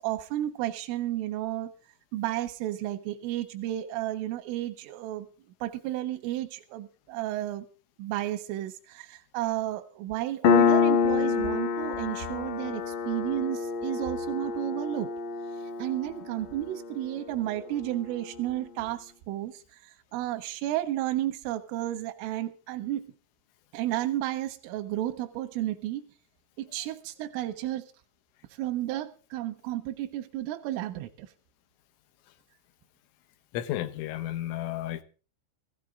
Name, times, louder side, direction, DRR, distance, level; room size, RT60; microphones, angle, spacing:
voice 1, 0.0-1.7 2.1-5.3 5.6-7.7 8.0-15.1 15.8-19.6 20.1-23.0 23.7-26.1 26.6-27.9 28.6-31.3, right 14 dB, 85° right, 3.5 m, -32 dB
Piano, 10.4-17.6, left 5 dB, 65° left, 2.2 m, -27 dB
voice 2, 33.5-35.0, left 13 dB, 85° left, 3.7 m, -32 dB
16.0 x 16.0 x 3.7 m
omnidirectional pair, 5.6 m